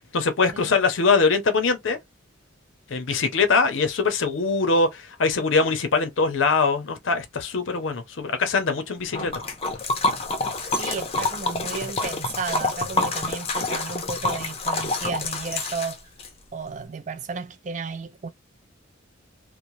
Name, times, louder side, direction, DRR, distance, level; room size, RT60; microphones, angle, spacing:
voice 1, 0.1-2.0 2.9-9.3, left 4 dB, 70° left, 0.6 m, -22 dB
Liquid, 9.1-16.3, left 2 dB, 30° left, 0.5 m, -27 dB
voice 2, 10.8-16.1 16.5-18.3, right 5 dB, 35° right, 0.3 m, -33 dB
3.0 x 2.1 x 2.6 m
head